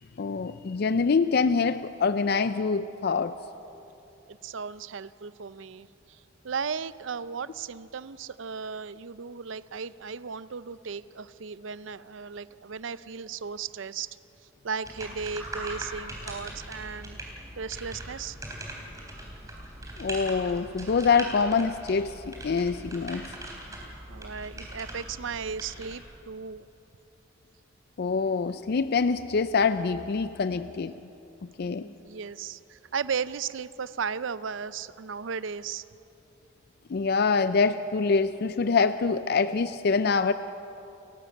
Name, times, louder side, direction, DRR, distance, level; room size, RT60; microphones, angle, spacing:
voice 1, 0.2-3.3 20.0-23.3 28.0-30.9 31.6-31.9 36.9-40.3, left 5 dB, 50° left, 12 dB, 0.4 m, -25 dB
voice 2, 4.3-14.2 14.6-17.2 17.6-18.4 24.1-26.7 31.6-35.8, right 6 dB, 65° right, 16 dB, 0.5 m, -36 dB
sound 1, 14.8-26.0, right 1 dB, 15° right, 3.7 m, -41 dB
29.5 x 12.5 x 8.5 m, 3.0 s
head